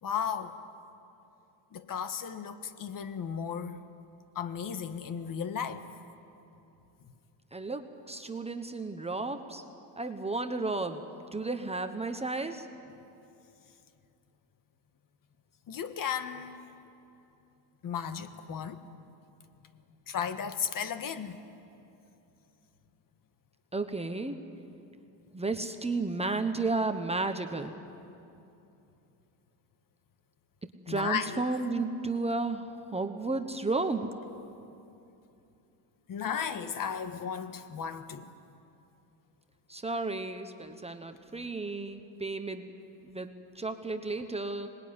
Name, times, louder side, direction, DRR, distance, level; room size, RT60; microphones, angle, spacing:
voice 1, 0.0-0.5 1.7-3.8 4.3-5.9 15.7-16.6 17.8-18.8 20.1-21.4 30.9-31.4 36.1-38.3, left 7 dB, 40° left, 1.6 m, -35 dB
voice 2, 7.5-9.6 10.0-11.0 11.3-12.7 23.7-24.4 25.3-27.8 30.9-32.7 32.9-34.1 39.7-42.7 43.0-43.3 43.6-44.7, right 3 dB, 15° right, 1.1 m, -33 dB
25.5 x 20.5 x 9.7 m
cardioid pair, 120°, 49 cm